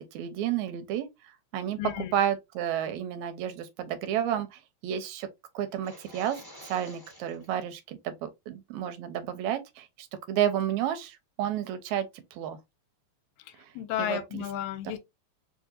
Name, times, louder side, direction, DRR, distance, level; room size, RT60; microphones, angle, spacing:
voice 1, 0.1-1.1 1.5-1.8 2.1-5.3 5.6-6.4 6.6-12.6 14.0-14.4, right 10 dB, 80° right, 1.9 m, -31 dB
voice 2, 1.8-2.1 13.5-15.0, left 11 dB, 80° left, 2.0 m, -33 dB
sound 1, 5.7-7.5, left 1 dB, 35° left, 0.3 m, -49 dB
4.4 x 2.7 x 2.4 m
omnidirectional pair, 3.4 m